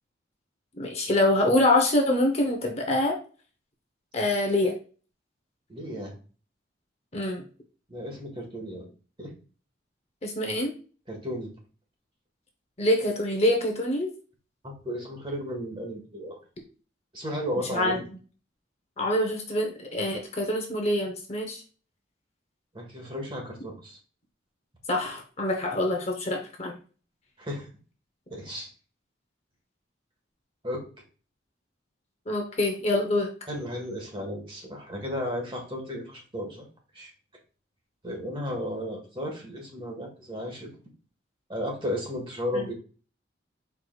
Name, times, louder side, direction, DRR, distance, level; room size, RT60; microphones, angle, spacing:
voice 1, 0.8-3.2 4.1-4.7 7.1-7.4 10.2-10.7 12.8-14.1 17.7-18.0 19.0-21.6 24.9-26.8 32.3-33.3 42.5-42.7, left 1 dB, 35° left, 2 dB, 0.8 m, -25 dB
voice 2, 5.7-6.1 7.9-8.9 9.2-9.3 11.1-11.5 14.6-16.4 17.1-18.1 22.7-24.0 27.4-27.7 28.3-28.7 30.6-30.8 33.5-36.7 36.9-37.1 38.0-40.7 41.5-42.7, equal, 25° right, 0 dB, 1.4 m, -34 dB
4.7 x 4.6 x 2.3 m, 0.37 s
head